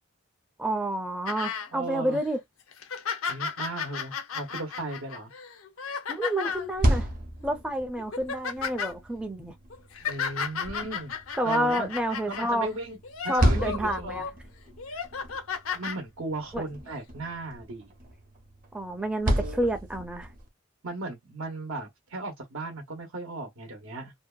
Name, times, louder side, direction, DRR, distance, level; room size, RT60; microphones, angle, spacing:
voice 1, 0.6-2.4 6.1-7.1 7.4-9.5 11.4-12.7 13.3-14.3 16.5-16.6 18.7-20.3, right 1 dB, 5° right, 0.4 m, -29 dB
sound 1, 1.3-1.7 2.2-2.3 2.7-6.7 7.4-7.6 8.0-8.9 9.7-12.5 13.0-14.3 14.8-16.0 16.9-17.0, left 6 dB, 90° left, 0.7 m, -34 dB
voice 2, 1.7-2.2 3.3-5.3 10.0-11.1 11.4-11.9 12.3-13.0 13.2-14.2 14.9-15.0 15.7-17.9 19.4-19.7 20.8-24.1, right 2 dB, 80° right, 0.8 m, -36 dB
sound 2, 6.5-20.5, right 1 dB, 40° right, 0.7 m, -33 dB
2.7 x 2.2 x 2.2 m
head